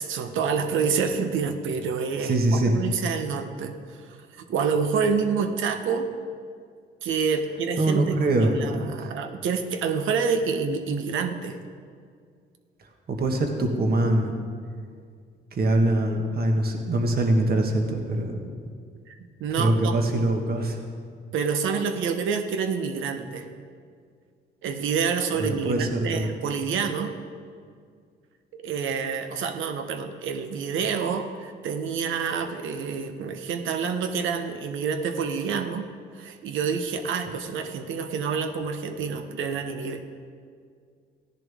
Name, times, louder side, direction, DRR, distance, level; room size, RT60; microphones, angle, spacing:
voice 1, 0.0-6.1 7.0-11.6 19.1-20.3 21.3-23.5 24.6-27.1 28.5-35.9 36.1-40.0, right 6 dB, 80° right, 7 dB, 1.0 m, -28 dB
voice 2, 2.3-2.7 7.8-8.5 13.1-14.3 15.6-18.4 19.6-20.7 25.4-26.3, right 1 dB, 50° right, 3 dB, 1.7 m, -23 dB
16.0 x 10.5 x 3.6 m, 2.2 s
cardioid pair, 90°, 20 cm